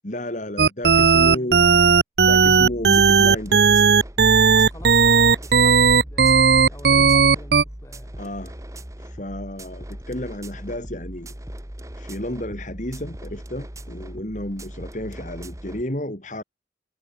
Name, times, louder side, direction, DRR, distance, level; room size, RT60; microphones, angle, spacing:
voice 1, 0.0-1.6 2.2-3.9 8.2-8.5 9.0-11.3 12.0-16.4, left 1 dB, 45° left, 3.4 m, -32 dB
sound 1, 0.6-7.6, right 5 dB, 60° right, 0.7 m, -15 dB
voice 2, 1.2-1.8 4.5-8.5, left 1 dB, 15° left, 4.4 m, -45 dB
sound 2, 2.5-15.8, right 1 dB, 15° right, 1.8 m, -39 dB
head